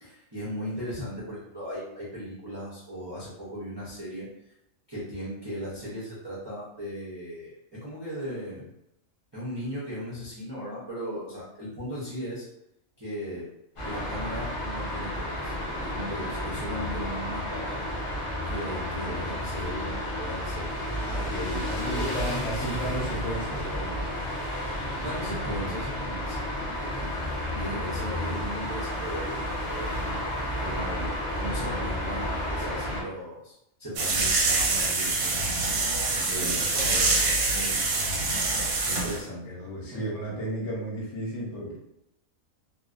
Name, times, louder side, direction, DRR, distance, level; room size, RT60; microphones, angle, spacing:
voice 1, 0.0-4.3 4.9-8.7 9.3-12.4 13.0-13.5 13.8-17.8 18.4-20.8 21.6-22.2 22.5-22.6 25.0-26.4 26.8-27.1 27.5-29.9 30.6-33.5 33.8-35.4 36.1-38.1 38.8-39.6 39.9-40.0, equal, 40° right, -10 dB, 0.3 m, -37 dB
sound 1, 13.8-33.0, left 1 dB, 40° left, 0.4 m, -32 dB
voice 2, 21.0-24.2 26.6-26.7 36.1-36.6 39.4-41.8, equal, 65° left, -3 dB, 0.9 m, -34 dB
sound 2, 34.0-39.2, right 3 dB, 90° right, 1.0 m, -25 dB
2.4 x 2.1 x 2.4 m, 0.82 s
omnidirectional pair, 1.5 m